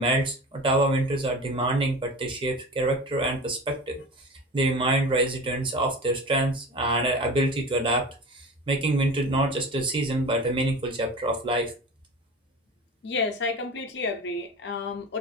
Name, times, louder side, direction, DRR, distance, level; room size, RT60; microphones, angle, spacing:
voice 1, 0.0-4.0 4.5-8.1 8.7-11.7, right 1 dB, 30° right, 0.5 m, -25 dB
voice 2, 13.0-15.2, left 3 dB, 70° left, 0.5 m, -30 dB
2.5 x 2.1 x 2.4 m
head